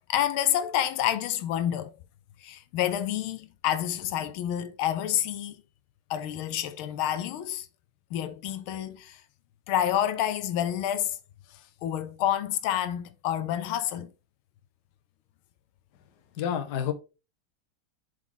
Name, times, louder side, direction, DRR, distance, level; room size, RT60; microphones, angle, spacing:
voice 1, 0.1-1.9 2.4-5.6 6.1-7.7 8.1-9.2 9.7-11.2 11.5-14.1, left 11 dB, 85° left, 1.5 m, -28 dB
voice 2, 16.4-16.9, left 9 dB, 60° left, 1.3 m, -28 dB
7.4 x 4.8 x 3.8 m
omnidirectional pair, 2.3 m